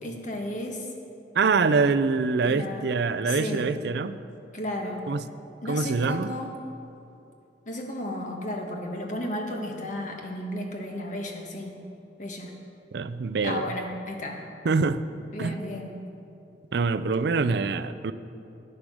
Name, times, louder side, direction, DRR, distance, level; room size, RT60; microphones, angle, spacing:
voice 1, 0.0-0.9 2.4-2.9 3.2-3.7 4.5-5.0 5.6-6.5 7.6-11.7 12.2-12.5 13.4-14.4 15.3-15.9, left 1 dB, 45° left, 2 dB, 1.5 m, -33 dB
voice 2, 1.4-4.2 5.1-5.2 5.7-6.3 12.9-13.6 14.6-15.0 15.4-15.6 16.7-18.1, right 4 dB, 65° right, 13 dB, 0.5 m, -25 dB
10.0 x 9.7 x 6.3 m, 2.7 s
head